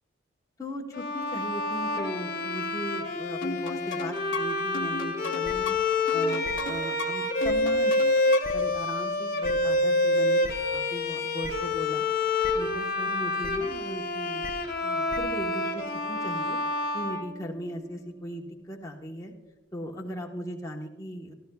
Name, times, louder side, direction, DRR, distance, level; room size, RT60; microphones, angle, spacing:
voice 1, 0.6-7.9 8.5-12.0 12.3-14.4 14.8-16.6 16.9-19.3 19.7-21.3, equal, 15° left, -1 dB, 1.1 m, -38 dB
Bowed string instrument, 0.9-17.9, left 2 dB, 45° left, 1.9 m, -28 dB
sound 1, 3.4-8.7, left 4 dB, 65° left, 0.9 m, -37 dB
sound 2, 5.4-5.5 6.4-6.5 7.4-7.5 8.4-8.5 9.4-9.5 10.4-10.5 11.4-11.5 12.4-12.5 13.4-13.5 14.4-14.5 15.1-15.2, left 2 dB, 15° right, 0.9 m, -38 dB
26.5 x 12.0 x 2.3 m, 1.2 s
head